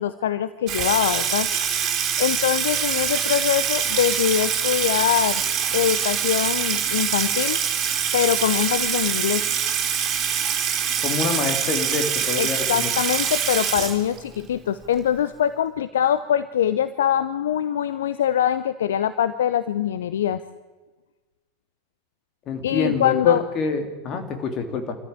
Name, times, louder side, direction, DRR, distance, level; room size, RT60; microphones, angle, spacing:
voice 1, 0.0-1.5 2.2-5.4 5.7-7.6 8.1-9.4 12.4-20.4 22.6-23.4, left 10 dB, 60° left, 13 dB, 0.7 m, -23 dB
Water tap faucet / Sink (filling or washing), 0.7-14.4, right 8 dB, 30° right, 4.5 m, -24 dB
voice 2, 11.0-12.9 22.5-24.9, left 5 dB, 35° left, 5 dB, 3.2 m, -26 dB
25.5 x 14.0 x 8.9 m, 1.3 s
figure-of-eight pair, 90°, 0 cm